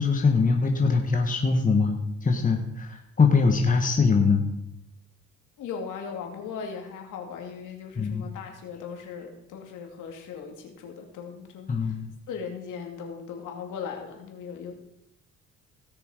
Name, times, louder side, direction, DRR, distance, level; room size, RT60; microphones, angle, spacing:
voice 1, 0.0-4.4 7.9-8.3 11.7-12.1, left 4 dB, 25° left, 3 dB, 1.4 m, -22 dB
voice 2, 5.6-11.9 12.3-14.9, left 6 dB, 85° left, 3 dB, 2.5 m, -38 dB
17.0 x 6.8 x 5.0 m, 0.81 s
cardioid pair, 90°, 30 cm